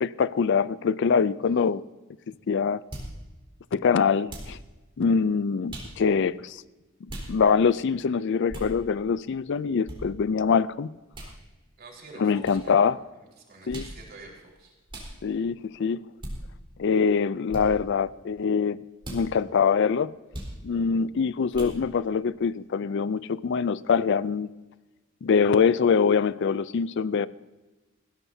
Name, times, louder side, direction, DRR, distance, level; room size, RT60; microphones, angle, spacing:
voice 1, 0.0-1.8 2.5-2.8 3.7-4.6 5.0-6.6 7.3-10.9 12.2-13.0 13.7-13.9 15.2-16.0 16.8-18.8 19.1-20.1 20.6-24.5 25.2-27.3, left 6 dB, 60° left, 18 dB, 0.4 m, -24 dB
sound 1, 2.9-3.1 4.3-4.6 5.7-5.9 7.1-7.3 8.5-8.7 9.9-10.0 11.1-11.3 12.4-12.6 13.7-14.0 14.9-15.1 16.2-16.4 17.5-17.7 19.0-19.2 20.3-20.5 21.5-21.8, right 1 dB, 25° right, 4.0 m, -37 dB
voice 2, 11.8-12.8 13.5-14.7, right 2 dB, 50° right, -1 dB, 4.5 m, -47 dB
20.5 x 16.5 x 2.7 m, 1.2 s
head